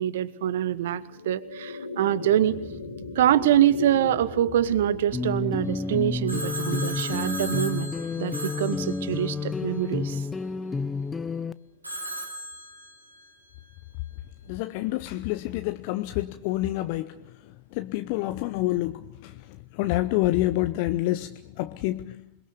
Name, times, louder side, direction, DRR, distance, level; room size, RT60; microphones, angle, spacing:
voice 1, 0.0-2.6 3.1-7.9 8.2-10.3, right 11 dB, 60° right, 1.1 m, -25 dB
sound 1, 0.8-11.3, left 3 dB, 75° left, 3.3 m, -40 dB
sound 2, 5.1-11.5, left 4 dB, 15° left, 0.9 m, -30 dB
Telephone, 6.3-9.6 11.8-13.4, right 1 dB, 85° right, 3.7 m, -37 dB
voice 2, 14.5-17.1 17.7-19.4 19.7-22.2, left 16 dB, 45° left, 0.9 m, -27 dB
27.5 x 22.0 x 6.8 m
figure-of-eight pair, 90°, 0 cm